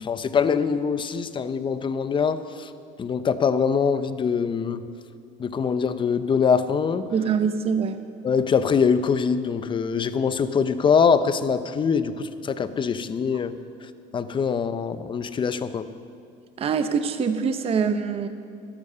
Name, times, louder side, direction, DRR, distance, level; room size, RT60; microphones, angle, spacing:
voice 1, 0.0-2.7 3.0-4.8 5.4-7.1 8.2-13.5 14.1-15.8, left 6 dB, 30° left, 12 dB, 0.6 m, -23 dB
voice 2, 7.1-8.0 16.6-18.3, right 6 dB, 35° right, 9 dB, 0.8 m, -24 dB
12.5 x 12.0 x 5.5 m, 2.3 s
supercardioid pair, 105°, 16 cm